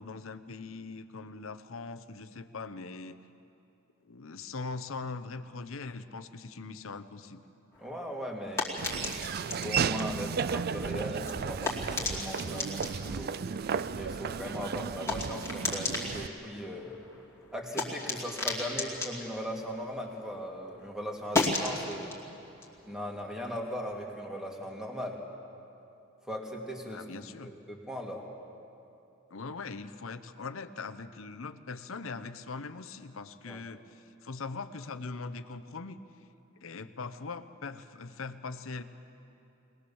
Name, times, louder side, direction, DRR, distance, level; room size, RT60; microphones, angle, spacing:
voice 1, 0.0-3.2 4.0-7.4 26.8-27.5 29.3-36.0 36.6-38.8, left 4 dB, 75° left, 10 dB, 0.8 m, -41 dB
sound 1, 7.7-20.5 20.8-24.0, left 3 dB, 15° left, 2.5 m, -37 dB
voice 2, 7.8-13.3 13.9-16.9 17.5-22.2 22.8-25.2 26.3-27.0 27.4-28.2 33.5-33.6, equal, 5° right, -1 dB, 2.4 m, -39 dB
Laughter / Walk footsteps, 8.8-16.3, right 6 dB, 50° right, 0.4 m, -34 dB
21.5 x 20.0 x 7.1 m, 2.7 s
head